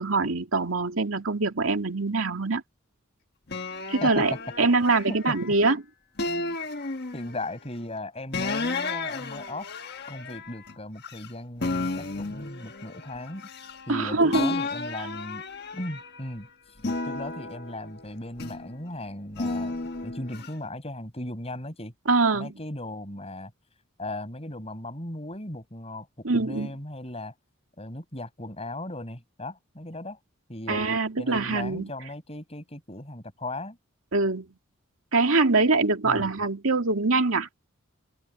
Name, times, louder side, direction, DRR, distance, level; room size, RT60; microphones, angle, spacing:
voice 1, 0.0-2.6 3.9-5.8 13.9-14.5 22.1-22.5 26.2-26.7 30.7-31.9 34.1-34.5 35.1-37.5, right 3 dB, 80° right, 2.4 m, -24 dB
sound 1, 3.5-5.6 6.2-7.5 8.3-11.3 11.6-14.0 14.3-16.3 16.8-18.8 19.4-20.5, left 3 dB, 50° left, 1.5 m, -33 dB
voice 2, 4.0-4.4 4.9-5.3 6.3-6.6 7.1-9.7 10.1-13.5 13.9-15.4 15.7-16.5 17.0-21.9 22.3-23.5 24.0-27.3 27.8-30.2 30.5-30.9 31.2-33.8 36.0-36.3, left 1 dB, 30° left, 6.1 m, -37 dB
Wind instrument woodwind instrument, 11.8-16.7, left 4 dB, 70° left, 5.6 m, -52 dB
open air
head